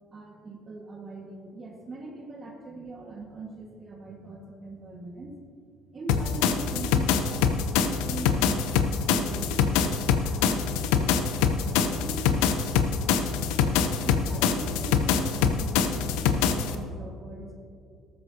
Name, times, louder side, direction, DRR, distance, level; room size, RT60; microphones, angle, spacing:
voice 1, 0.1-8.8 9.1-13.2 14.0-17.5, right 3 dB, 35° right, 0 dB, 1.7 m, -41 dB
sound 1, 6.1-16.7, left 6 dB, 85° left, 0.8 m, -24 dB
13.5 x 13.0 x 2.9 m, 2.4 s
supercardioid pair, 95°, 0 cm